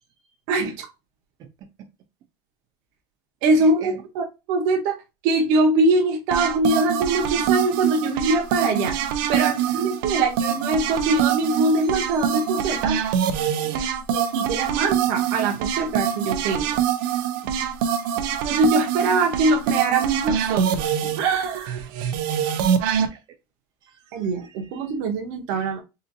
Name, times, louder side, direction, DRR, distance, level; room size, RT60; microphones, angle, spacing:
voice 1, 0.5-0.8 3.4-5.0 5.2-9.0 9.3-13.0 14.1-16.7 17.4-17.5 18.4-21.8 24.1-25.8, right 2 dB, 60° right, 0.8 m, -23 dB
voice 2, 3.6-4.0 9.4-9.9 12.1-12.9 13.6-13.9 17.6-18.1 23.0-23.2 23.8-24.9, right 8 dB, 40° right, 0.5 m, -44 dB
sound 1, 6.3-23.1, right 9 dB, 90° right, 0.5 m, -24 dB
3.8 x 2.5 x 2.6 m
cardioid pair, 170°, 11 cm